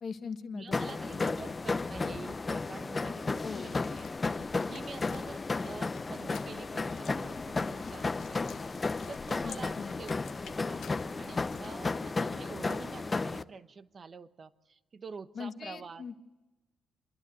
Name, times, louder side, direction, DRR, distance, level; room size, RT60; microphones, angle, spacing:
voice 1, 0.0-0.8 1.1-1.3 3.4-3.8 9.4-10.0 15.3-16.1, left 5 dB, 55° left, 8 dB, 1.5 m, -40 dB
voice 2, 0.5-10.1 10.4-16.0, right 5 dB, 45° right, 13 dB, 1.0 m, -47 dB
sound 1, 0.7-13.4, left 3 dB, 30° left, 0.7 m, -34 dB
sound 2, 3.7-11.7, left 9 dB, 70° left, 1.1 m, -53 dB
27.5 x 11.5 x 8.3 m, 1.1 s
supercardioid pair, 65°, 0 cm